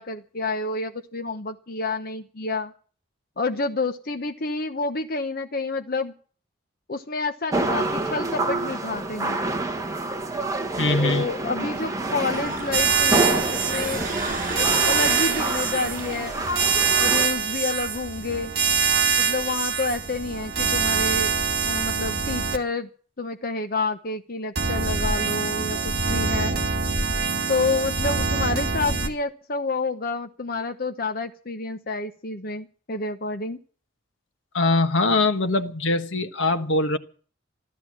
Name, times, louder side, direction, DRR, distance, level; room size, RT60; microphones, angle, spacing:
voice 1, 0.0-2.7 3.4-6.1 6.9-9.4 11.0-14.0 14.6-16.4 17.0-18.5 19.2-21.4 21.6-22.9 23.2-26.6 27.5-33.6, left 3 dB, 50° left, 6 dB, 0.9 m, -29 dB
sound 1, 7.5-17.3, right 2 dB, 20° right, 1.4 m, -28 dB
voice 2, 10.8-11.2 34.5-37.0, left 2 dB, 75° left, 9 dB, 1.4 m, -22 dB
sound 2, 12.3-18.1, right 3 dB, 40° right, 7.9 m, -35 dB
sound 3, 12.7-22.6 24.5-29.1, right 5 dB, 60° right, 2.5 m, -24 dB
14.5 x 13.0 x 7.5 m, 0.43 s
head